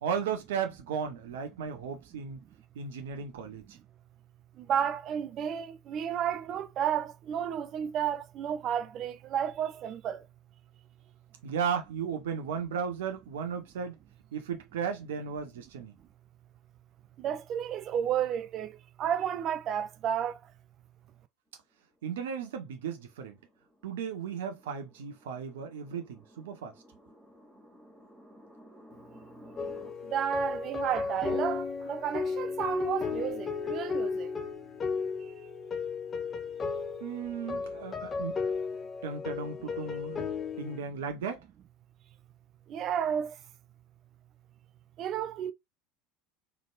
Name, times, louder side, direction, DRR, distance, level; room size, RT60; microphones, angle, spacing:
voice 1, 0.0-2.4 2.7-3.8 11.4-14.0 14.3-15.9 22.0-23.4 23.8-26.7 37.0-38.4 39.0-40.2 40.6-41.5, right 7 dB, 65° right, 0.9 m, -35 dB
voice 2, 4.6-10.2 17.2-18.7 19.0-20.4 30.1-34.3 42.7-43.3 45.0-45.5, right 9 dB, 40° right, 0.4 m, -32 dB
sound 1, 21.9-29.9, equal, 15° right, 2.1 m, -56 dB
sound 2, 29.6-40.8, left 5 dB, 25° left, 0.8 m, -34 dB
4.0 x 3.4 x 2.3 m
figure-of-eight pair, 70°, 0 cm